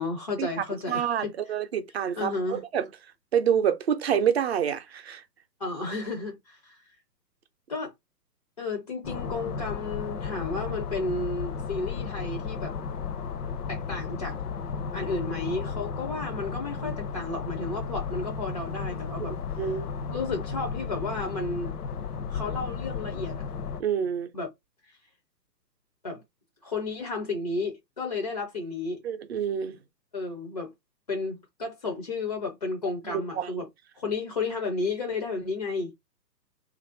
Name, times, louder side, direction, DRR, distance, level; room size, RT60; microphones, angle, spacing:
voice 1, 0.0-1.3 2.2-2.6 5.6-6.9 7.7-7.9 8.6-12.7 13.7-14.4 14.9-19.7 20.1-21.7 22.3-23.4 24.3-24.5 26.0-26.2 26.6-29.0 30.1-30.7 31.1-33.7 33.9-35.9, left 3 dB, 25° left, 0.4 m, -32 dB
voice 2, 0.9-2.9 3.3-5.2 19.2-19.9 23.8-24.3 29.0-29.8 33.1-33.6, right 8 dB, 40° right, 0.6 m, -27 dB
sound 1, 9.0-23.8, left 5 dB, 65° left, 0.8 m, -34 dB
3.0 x 2.6 x 4.3 m
hypercardioid pair, 140°, 50 cm